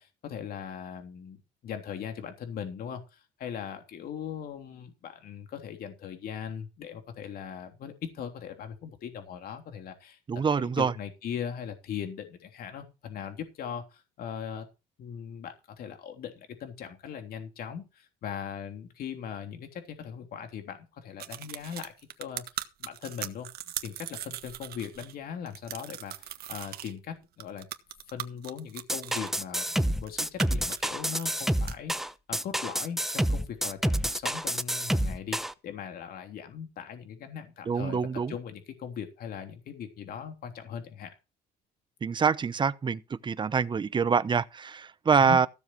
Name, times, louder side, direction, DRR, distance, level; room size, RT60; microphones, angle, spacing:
voice 1, 0.0-10.2 10.5-14.7 15.0-22.4 22.8-23.5 23.8-27.7 28.1-35.4 35.6-38.0 38.3-41.1 45.2-45.4, left 8 dB, 65° left, 3.3 m, -39 dB
voice 2, 10.3-10.9 37.7-38.3 42.0-45.5, right 6 dB, 30° right, 0.9 m, -25 dB
sound 1, 21.2-25.1 25.5-26.9 27.4-29.4 29.9-31.8, right 12 dB, 65° right, 1.6 m, -39 dB
sound 2, 28.9-35.5, right 1 dB, ahead, 0.9 m, -28 dB
15.5 x 7.4 x 4.7 m
cardioid pair, 110°, 17 cm